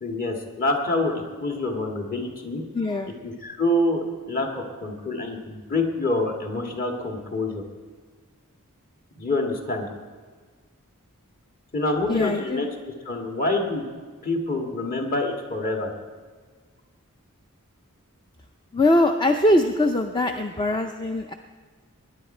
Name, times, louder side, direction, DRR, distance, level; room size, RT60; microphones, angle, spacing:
voice 1, 0.0-2.6 3.2-7.6 9.2-9.9 11.7-12.7 13.1-13.8 14.2-15.9, left 2 dB, 40° left, 2 dB, 1.9 m, -26 dB
voice 2, 2.7-3.1 12.1-12.6 18.7-21.3, left 1 dB, 20° left, 5 dB, 0.5 m, -22 dB
20.0 x 10.0 x 4.4 m, 1.5 s
head